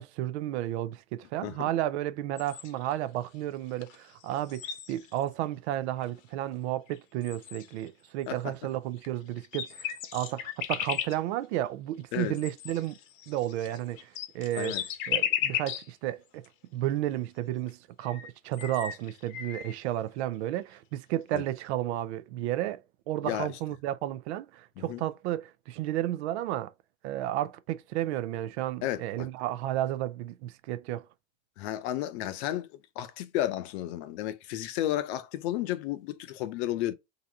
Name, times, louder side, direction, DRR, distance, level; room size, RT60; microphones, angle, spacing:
voice 1, 0.0-13.0 13.3-14.8 15.1-16.4 16.7-26.7 27.0-31.0, right 13 dB, 60° right, 0.6 m, -32 dB
sound 1, 2.4-2.9 3.8-4.0 4.2-5.3 6.0-6.1 6.9-7.0 7.2-7.9 9.0-9.1 9.4-11.2 12.3-15.9 16.4-16.5 17.7-17.8 18.0-19.7, left 10 dB, 80° left, 1.1 m, -35 dB
voice 2, 28.8-29.3 31.6-32.7 33.0-36.9, left 13 dB, 55° left, 0.8 m, -32 dB
3.9 x 2.8 x 4.5 m
supercardioid pair, 160°, 39 cm